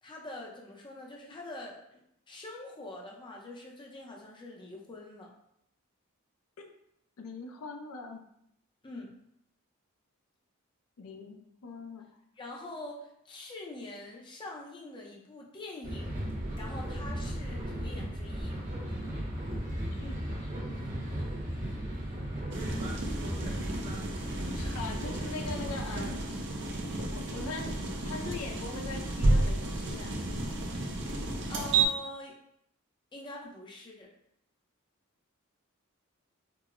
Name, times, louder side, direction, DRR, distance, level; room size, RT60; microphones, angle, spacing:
voice 1, 0.0-2.0 2.3-5.3 8.8-9.1 12.4-16.1 16.6-18.6 24.6-24.8 31.5-32.4 33.1-34.1, left 2 dB, 20° left, -1 dB, 0.5 m, -44 dB
voice 2, 7.2-8.2 11.0-12.1 20.0-22.2 24.5-26.2 27.0-27.7 28.0-30.2, left 4 dB, 90° left, 4 dB, 0.4 m, -42 dB
sound 1, 15.8-26.3, equal, 40° right, 0.9 m, -36 dB
sound 2, 22.5-31.9, right 2 dB, 55° right, 0.5 m, -32 dB
4.6 x 2.0 x 2.4 m, 0.75 s
head